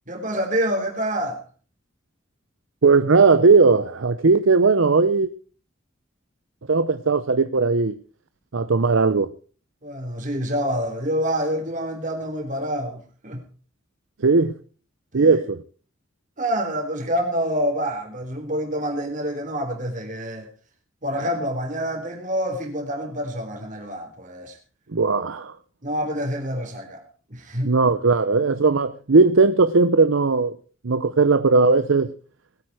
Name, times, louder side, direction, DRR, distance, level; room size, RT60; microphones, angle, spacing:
voice 1, 0.1-1.4 9.8-13.4 15.1-15.4 16.4-20.5 21.0-24.6 25.8-27.0 27.3-27.7, equal, 40° right, 4.0 m, -27 dB
voice 2, 2.8-5.3 6.7-7.9 8.5-9.3 14.2-14.5 15.1-15.6 24.9-25.5 27.6-30.5 30.8-32.1, right 4 dB, 75° right, 0.7 m, -18 dB
20.5 x 9.0 x 4.8 m
head